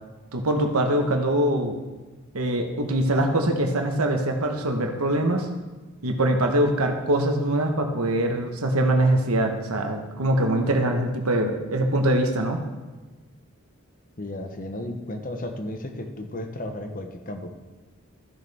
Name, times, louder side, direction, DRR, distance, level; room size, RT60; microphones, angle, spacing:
voice 1, 0.3-1.8 2.3-5.5 6.0-12.6, right 1 dB, 85° right, 3 dB, 1.1 m, -23 dB
voice 2, 14.2-17.5, left 1 dB, 40° left, 5 dB, 0.9 m, -34 dB
14.0 x 6.7 x 3.5 m, 1.2 s
head